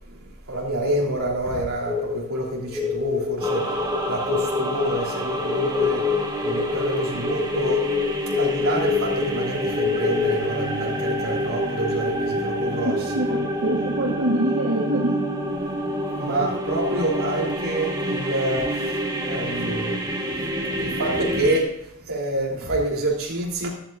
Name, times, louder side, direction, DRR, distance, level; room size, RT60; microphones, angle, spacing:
voice 1, 0.5-6.1 6.4-8.0 8.4-13.2 16.2-20.0 20.2-20.3 20.7-23.7, right 1 dB, 65° right, -2 dB, 3.8 m, -27 dB
sound 1, 1.8-10.5, left 6 dB, ahead, 2.1 m, -26 dB
sound 2, 3.4-21.6, right 1 dB, 20° right, 2.1 m, -28 dB
voice 2, 12.8-15.2 16.4-16.5, right 1 dB, 80° right, -2 dB, 1.7 m, -25 dB
14.0 x 12.5 x 2.8 m, 0.80 s
head